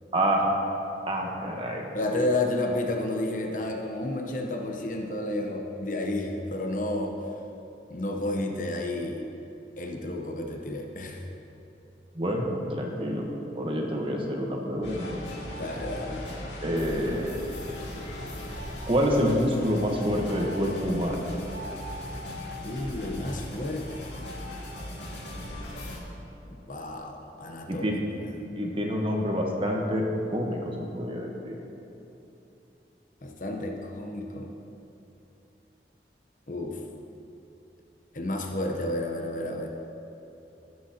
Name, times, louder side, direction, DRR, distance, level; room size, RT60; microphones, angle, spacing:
voice 1, 0.1-0.5 1.1-1.9 12.1-13.3 13.5-15.2 16.6-17.4 18.9-21.3 27.7-28.0 28.6-30.0 30.3-31.6, equal, 30° right, 0 dB, 1.1 m, -27 dB
voice 2, 1.9-7.1 7.9-9.2 9.8-11.2 15.5-16.3 22.6-24.1 26.7-27.9 28.1-28.3 33.2-34.5 36.5-36.8 38.1-39.7, left 1 dB, 45° left, 2 dB, 0.9 m, -31 dB
sound 1, 14.8-26.0, left 1 dB, 90° left, 2.1 m, -38 dB
18.0 x 7.7 x 2.9 m, 2.9 s
head